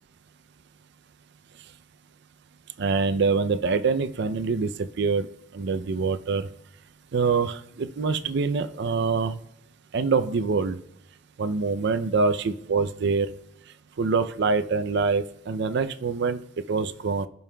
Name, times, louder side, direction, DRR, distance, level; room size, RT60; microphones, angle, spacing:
voice 1, 2.8-5.3 5.5-6.5 7.1-9.4 9.9-10.8 11.4-13.3 14.0-16.4 16.7-17.3, right 4 dB, 60° right, 11 dB, 0.5 m, -25 dB
15.5 x 5.4 x 2.2 m, 0.80 s
head